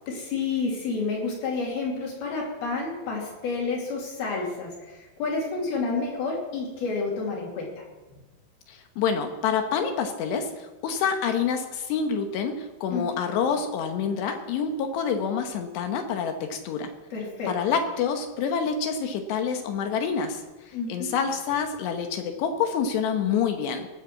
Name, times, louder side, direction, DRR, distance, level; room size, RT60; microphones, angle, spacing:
voice 1, 0.1-7.8 12.9-13.0 17.1-17.5 20.7-21.1, left 4 dB, 55° left, -3 dB, 4.2 m, -30 dB
voice 2, 8.7-16.9 17.5-23.9, left 6 dB, 70° left, 6 dB, 2.9 m, -27 dB
18.5 x 6.5 x 7.5 m, 1.2 s
omnidirectional pair, 5.7 m